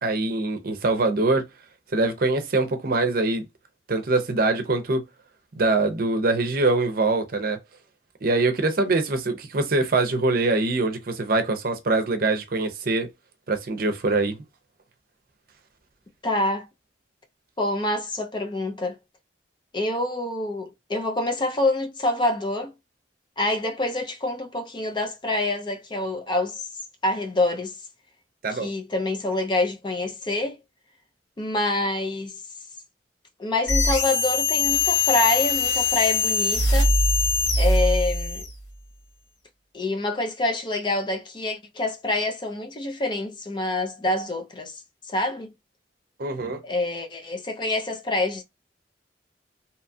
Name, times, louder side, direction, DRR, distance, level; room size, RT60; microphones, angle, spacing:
voice 1, 0.0-1.4 1.9-3.4 3.9-5.0 5.6-7.6 8.2-13.1 13.5-14.4 28.4-28.7 46.2-46.6, right 2 dB, 55° right, 0.6 m, -23 dB
voice 2, 16.2-16.7 17.6-19.0 19.7-22.7 23.4-26.7 27.0-27.7 28.5-30.6 31.4-32.4 33.4-36.9 37.6-38.5 39.7-44.8 45.1-45.5 46.6-48.4, left 2 dB, 25° left, 0.5 m, -26 dB
sound 1, 33.7-38.6, left 3 dB, 85° left, 1.2 m, -22 dB
2.8 x 2.3 x 2.6 m
head